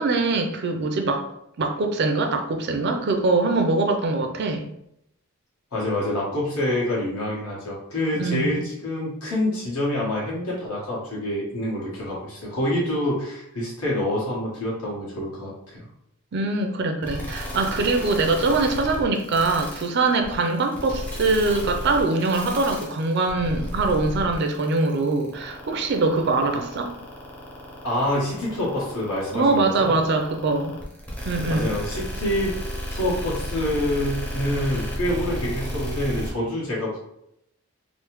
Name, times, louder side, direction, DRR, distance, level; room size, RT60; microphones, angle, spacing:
voice 1, 0.0-1.3 1.6-4.7 8.1-8.6 16.3-27.0 29.3-30.8 31.2-31.7, right 3 dB, 50° right, 4 dB, 0.4 m, -23 dB
voice 2, 5.7-15.9 27.8-30.0 31.5-32.6 32.9-37.0, left 1 dB, 80° left, -5 dB, 1.3 m, -26 dB
sound 1, 17.0-36.3, equal, 5° left, 0.5 m, -32 dB
3.1 x 2.0 x 3.0 m, 0.77 s
head